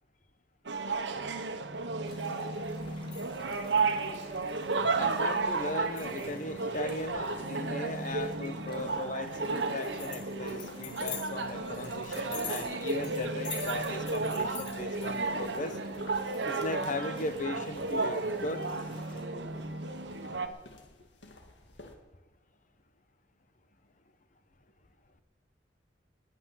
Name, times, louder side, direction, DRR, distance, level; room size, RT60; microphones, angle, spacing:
sound 1, 0.7-20.5, right 3 dB, 85° right, 1.2 m, -33 dB
sound 2, 2.0-19.2, left 1 dB, 30° left, 3.7 m, -54 dB
sound 3, 2.8-22.0, left 6 dB, 90° left, 2.0 m, -48 dB
voice 1, 4.9-15.8 16.4-18.6, left 2 dB, 45° left, 1.1 m, -38 dB
12.0 x 9.8 x 9.9 m
head